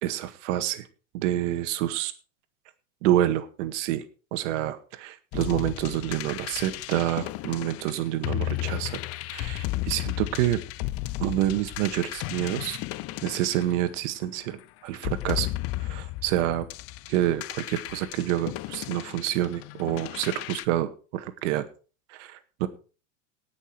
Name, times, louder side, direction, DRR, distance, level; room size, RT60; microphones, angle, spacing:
voice 1, 0.0-0.9 1.1-2.1 3.0-4.0 4.3-9.0 9.3-10.6 11.2-12.8 13.2-15.5 15.8-16.7 17.1-21.6 22.1-22.7, right 13 dB, 70° right, 10 dB, 1.8 m, -28 dB
sound 1, 5.3-14.3 14.9-20.6, left 17 dB, 40° left, 0.5 m, -34 dB
18.5 x 6.4 x 4.6 m, 0.36 s
supercardioid pair, 130°, 38 cm